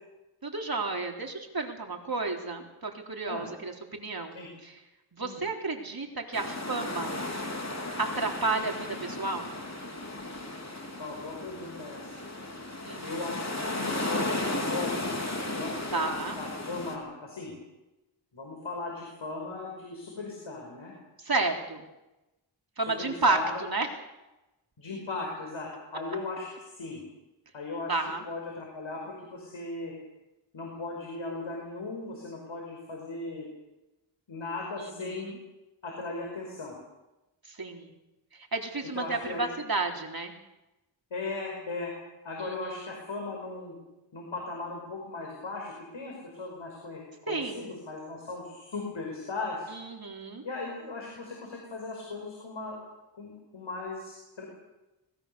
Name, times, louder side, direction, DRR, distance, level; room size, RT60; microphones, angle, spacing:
voice 1, 0.4-4.4 4.6-4.7 5.1-7.2 8.0-9.5 12.8-13.1 15.9-16.4 21.2-21.8 22.8-23.9 27.9-28.2 34.8-35.4 37.5-37.9 38.5-40.3 42.4-42.9 47.3-47.7 49.7-50.4, right 3 dB, 50° right, 2 dB, 3.7 m, -31 dB
sound 1, 6.3-17.0, left 2 dB, 35° left, 4.1 m, -35 dB
voice 2, 11.0-12.1 13.0-15.1 15.5-16.1 16.4-17.5 18.3-20.9 23.0-23.5 24.8-26.5 26.8-27.0 27.5-28.0 28.2-29.9 30.5-33.5 34.3-35.3 35.8-36.7 39.0-39.5 41.1-41.9 42.2-43.8 44.1-49.7 50.4-52.8 53.1-54.5, left 3 dB, 90° left, 0 dB, 5.4 m, -37 dB
26.0 x 20.0 x 7.0 m, 1.0 s
wide cardioid pair, 70°, 46 cm